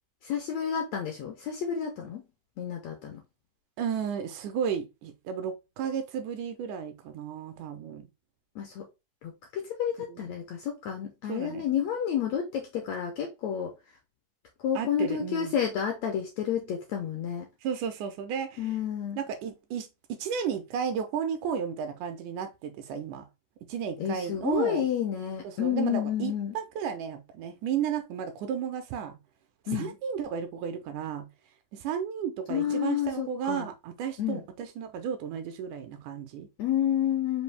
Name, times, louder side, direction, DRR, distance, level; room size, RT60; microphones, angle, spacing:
voice 1, 0.2-2.2 2.6-3.2 8.5-8.8 9.2-13.7 14.6-17.5 18.6-19.2 24.0-26.5 29.7-29.9 32.5-33.7 34.2-34.4 36.6-37.4, left 9 dB, 80° left, 1.6 m, -30 dB
voice 2, 3.8-8.1 10.1-10.4 11.3-11.7 14.8-15.6 17.6-18.7 19.2-23.3 23.7-24.9 25.4-29.2 29.7-31.3 31.7-36.5, right 7 dB, 80° right, 1.9 m, -33 dB
5.2 x 2.6 x 3.2 m
omnidirectional pair, 3.8 m